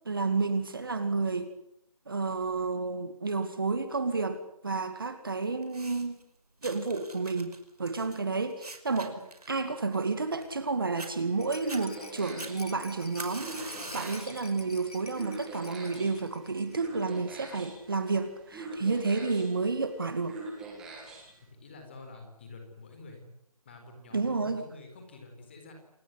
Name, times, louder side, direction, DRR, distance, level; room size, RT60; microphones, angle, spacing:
voice 1, 0.1-1.5 2.1-6.2 6.6-7.5 7.8-20.4 24.1-24.6, right 4 dB, 35° right, 9 dB, 2.2 m, -31 dB
sound 1, 5.6-6.2 6.6-10.7 11.0-11.1 11.5-11.8 12.4-14.4 14.8-15.2 15.9-16.0, right 2 dB, 80° right, 5.6 m, -44 dB
sound 2, 11.2-21.4, right 2 dB, 5° right, 1.7 m, -45 dB
Rattle, 11.4-17.1 17.3-17.4 17.7-17.8, left 2 dB, 75° left, 3.8 m, -49 dB
voice 2, 21.6-23.2 23.6-25.7, left 3 dB, 20° left, 4 dB, 4.3 m, -48 dB
28.5 x 19.0 x 10.0 m, 0.77 s
figure-of-eight pair, 175°, 19 cm